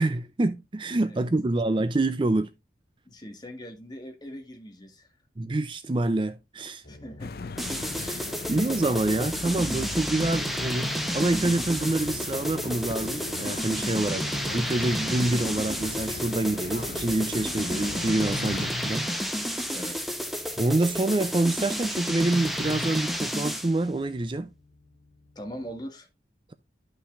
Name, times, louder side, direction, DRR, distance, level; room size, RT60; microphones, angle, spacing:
voice 1, 0.0-2.5 5.4-6.8 8.0-8.2 8.5-14.2 14.5-19.9 20.6-24.5, right 2 dB, 25° right, 0.4 m, -27 dB
voice 2, 1.0-1.4 3.0-5.1 6.9-8.2 19.7-20.0 25.3-26.1, equal, 25° left, 1.8 m, -42 dB
sound 1, 6.8-25.8, left 3 dB, 90° left, 1.8 m, -53 dB
sound 2, 7.2-18.7, left 3 dB, 55° left, 0.5 m, -38 dB
sound 3, 7.6-23.8, equal, ahead, 0.9 m, -31 dB
12.0 x 5.6 x 2.5 m
head